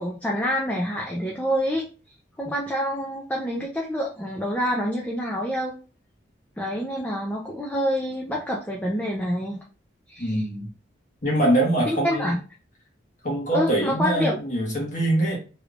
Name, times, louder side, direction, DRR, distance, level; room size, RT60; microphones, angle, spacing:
voice 1, 0.0-1.8 2.4-5.7 6.6-9.6 10.1-10.4 11.9-12.4 13.5-14.4, equal, 10° left, -3 dB, 0.5 m, -27 dB
voice 2, 10.2-10.7 11.2-12.3 13.2-15.4, right 1 dB, 40° left, -3 dB, 1.3 m, -23 dB
3.3 x 3.1 x 2.5 m, 0.35 s
head